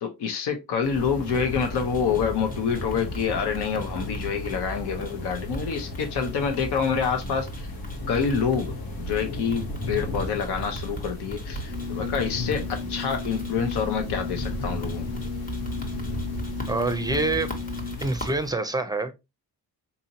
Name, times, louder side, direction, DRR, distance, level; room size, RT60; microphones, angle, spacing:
voice 1, 0.0-7.7 8.1-15.1, left 6 dB, 85° left, 0.9 m, -27 dB
sound 1, 0.8-18.5, equal, 20° left, 1.1 m, -40 dB
sound 2, 0.9-18.1, left 1 dB, 60° left, 1.2 m, -35 dB
sound 3, 11.7-17.9, left 5 dB, 40° left, 0.7 m, -35 dB
voice 2, 16.7-17.5 18.0-19.1, right 2 dB, 10° right, 0.5 m, -26 dB
4.2 x 2.7 x 2.8 m
cardioid pair, 105°, 39 cm